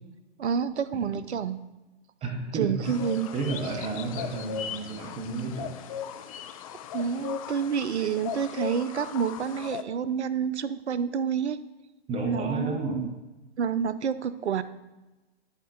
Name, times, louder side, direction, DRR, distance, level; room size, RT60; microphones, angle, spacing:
voice 1, 0.4-1.6 2.5-3.3 6.9-11.6 12.3-13.1 13.6-14.6, right 7 dB, 80° right, 15 dB, 0.5 m, -28 dB
voice 2, 2.2-3.0 3.3-5.7 12.1-13.0, right 3 dB, 20° right, 2 dB, 0.9 m, -32 dB
sound 1, 2.8-9.8, left 8 dB, 35° left, 0.4 m, -38 dB
10.5 x 3.7 x 3.8 m, 1.1 s
figure-of-eight pair, 115°, 33 cm